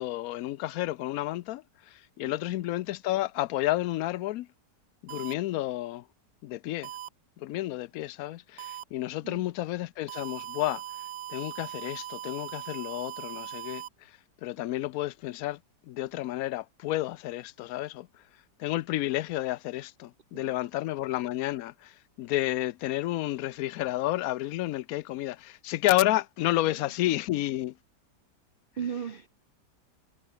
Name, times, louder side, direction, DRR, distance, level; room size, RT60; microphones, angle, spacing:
voice 1, 0.0-4.5 5.0-6.0 6.4-6.9 7.4-10.8 11.3-18.1 18.6-27.8, left 16 dB, 70° left, 0.9 m, -31 dB
sound 1, 5.1-5.3 6.8-7.1 8.6-8.8 10.1-13.9, right 13 dB, 85° right, 1.4 m, -40 dB
voice 2, 28.8-29.3, right 8 dB, 65° right, 0.5 m, -37 dB
omnidirectional pair, 1.9 m